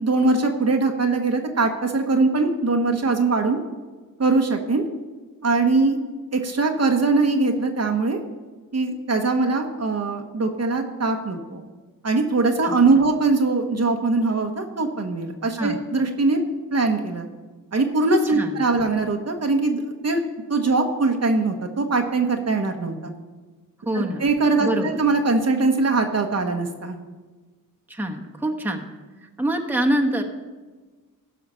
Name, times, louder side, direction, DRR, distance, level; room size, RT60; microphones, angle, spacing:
voice 1, 0.0-3.6 4.2-4.8 5.4-6.0 6.3-8.2 8.7-11.6 12.0-16.4 16.7-17.3 17.7-20.2 20.5-23.1 23.9-27.0, right 3 dB, 45° right, 4 dB, 1.2 m, -21 dB
voice 2, 12.6-13.1 15.6-15.8 18.3-18.9 23.8-24.2 24.6-25.0 27.9-28.8 29.2-30.2, right 1 dB, 5° right, 1 dB, 1.2 m, -26 dB
15.5 x 5.7 x 5.6 m, 1.3 s
cardioid pair, 75°, 36 cm